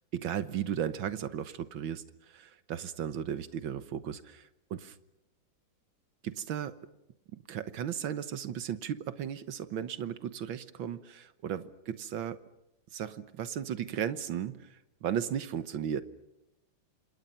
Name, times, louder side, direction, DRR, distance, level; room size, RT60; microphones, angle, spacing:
voice 1, 0.1-5.0 6.2-6.8 7.3-12.4 12.9-16.0, right 9 dB, 85° right, 12 dB, 1.8 m, -35 dB
29.5 x 27.0 x 5.7 m, 0.89 s
omnidirectional pair, 2.1 m